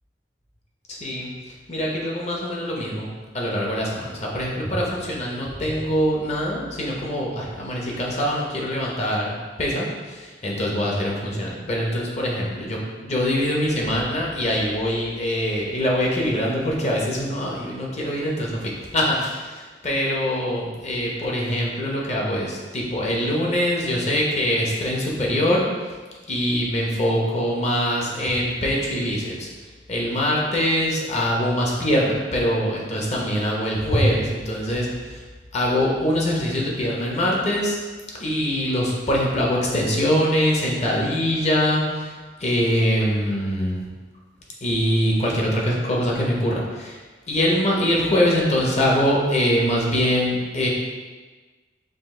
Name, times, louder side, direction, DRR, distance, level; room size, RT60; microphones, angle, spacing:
voice 1, 0.9-1.3 1.7-25.6 26.3-29.5 29.9-35.2 35.5-37.8 38.2-42.1 42.4-43.8 44.6-47.0 47.3-50.7, equal, 40° left, -3 dB, 0.9 m, -23 dB
5.1 x 2.4 x 3.7 m, 1.4 s
head